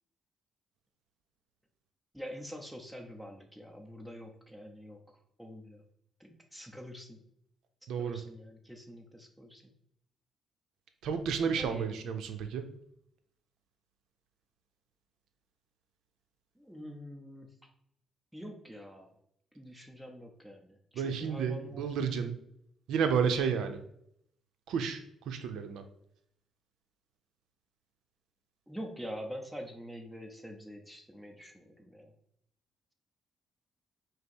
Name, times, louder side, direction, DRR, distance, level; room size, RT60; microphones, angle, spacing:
voice 1, 2.1-5.0 5.4-5.8 6.2-7.2 8.0-9.7 11.6-11.9 16.5-17.7 18.3-19.1 19.5-21.8 28.7-32.1, equal, ahead, 2 dB, 0.8 m, -45 dB
voice 2, 7.9-8.2 11.0-12.7 20.9-22.4 22.9-23.8 24.7-25.0 25.3-25.8, right 6 dB, 80° right, 8 dB, 0.5 m, -31 dB
5.1 x 2.0 x 4.4 m, 0.72 s
cardioid pair, 90°, 0 cm